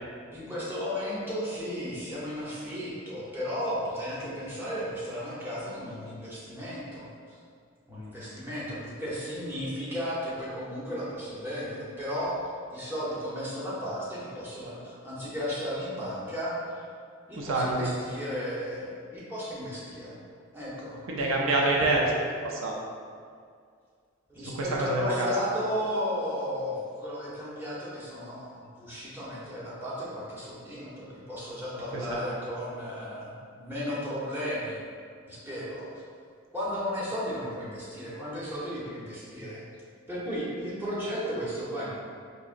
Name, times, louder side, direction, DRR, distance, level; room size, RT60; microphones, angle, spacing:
voice 1, 0.3-7.1 7.9-16.9 17.3-20.2 20.5-21.3 24.3-34.8 35.3-35.9 36.5-39.6 40.1-42.0, equal, 10° right, -9 dB, 0.8 m, -34 dB
voice 2, 17.4-17.9 21.1-22.1 22.4-22.8 24.5-25.5 31.9-32.3, right 2 dB, 70° right, -2 dB, 0.5 m, -27 dB
4.8 x 2.8 x 2.5 m, 2.2 s
head